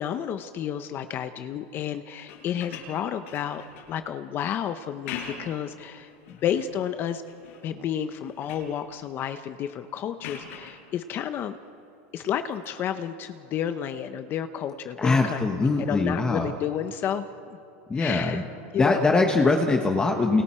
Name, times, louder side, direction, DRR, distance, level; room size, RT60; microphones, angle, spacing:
voice 1, 0.0-3.6 3.9-7.2 7.6-11.6 12.1-17.6 17.9-18.4 18.7-19.1, left 9 dB, 30° left, 10 dB, 0.8 m, -31 dB
sound 1, 2.2-4.0 4.9-5.6 6.1-6.7 7.2-7.7 8.0-8.8 10.2-10.8 12.5-12.7, left 7 dB, 80° left, 6.4 m, -41 dB
voice 2, 15.0-16.5 17.9-18.4 18.7-20.4, left 3 dB, 10° left, 3 dB, 1.1 m, -22 dB
29.5 x 28.5 x 4.4 m, 2.9 s
supercardioid pair, 155°, 7 cm